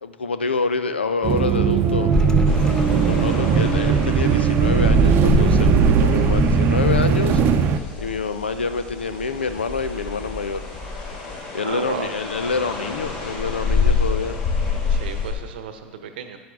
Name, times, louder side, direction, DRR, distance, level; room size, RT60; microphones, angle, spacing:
voice 1, 0.0-2.1 3.0-7.4 8.0-10.6 11.5-14.4, left 4 dB, 85° left, 10 dB, 0.6 m, -26 dB
sound 1, 1.2-7.8, right 7 dB, 40° right, 0.7 m, -18 dB
sound 2, 2.1-11.5, left 1 dB, 10° left, 0.7 m, -32 dB
sound 3, 2.4-8.6 9.1-15.3, left 4 dB, 50° left, 3.3 m, -26 dB
voice 2, 11.6-12.1 14.9-16.4, right 7 dB, 65° right, 8 dB, 0.9 m, -33 dB
10.5 x 9.5 x 3.8 m, 1.4 s
hypercardioid pair, 90°, 6 cm